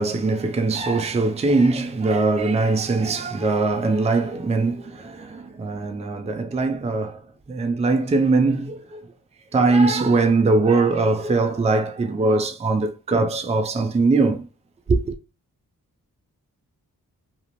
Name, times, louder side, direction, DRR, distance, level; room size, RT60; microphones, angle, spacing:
voice 1, 0.0-7.2 7.5-9.0 9.5-14.5 14.9-15.1, right 3 dB, 20° right, 0.4 m, -21 dB
2.5 x 2.0 x 3.0 m
supercardioid pair, 45°, 37 cm